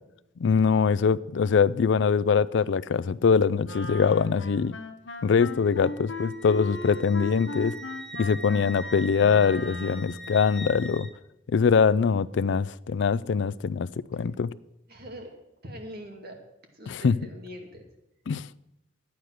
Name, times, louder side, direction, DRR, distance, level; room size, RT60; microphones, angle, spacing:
voice 1, 0.4-4.7 5.2-7.8 8.2-11.1 11.5-14.5 16.9-17.2 18.3-18.5, left 6 dB, 70° left, 0.4 m, -23 dB
Wind instrument woodwind instrument, 3.6-10.3, left 2 dB, 90° left, 1.2 m, -38 dB
Wind instrument woodwind instrument 2, 5.4-11.1, right 1 dB, 5° left, 0.9 m, -42 dB
voice 2, 14.9-15.3 15.6-16.4 16.7-17.9, equal, 55° right, 2.3 m, -42 dB
12.0 x 9.3 x 6.5 m
head